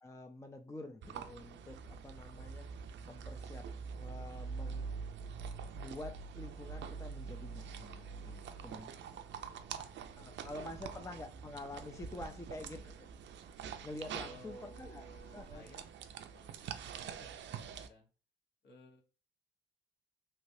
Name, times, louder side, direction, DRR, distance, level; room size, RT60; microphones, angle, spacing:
voice 1, 0.0-2.7 3.1-3.7 3.9-4.9 5.7-8.9 10.2-13.1 13.8-15.0 15.3-15.6 17.0-17.3, left 2 dB, 15° left, 6 dB, 0.4 m, -48 dB
sound 1, 1.0-17.9, right 6 dB, 65° right, 0.5 m, -45 dB
voice 2, 8.3-10.1 10.4-10.9 11.9-12.9 14.1-15.8 16.3-18.1 18.6-19.0, equal, 60° left, 1 dB, 1.2 m, -58 dB
3.1 x 2.9 x 2.7 m, 0.35 s
cardioid pair, 90°, 20 cm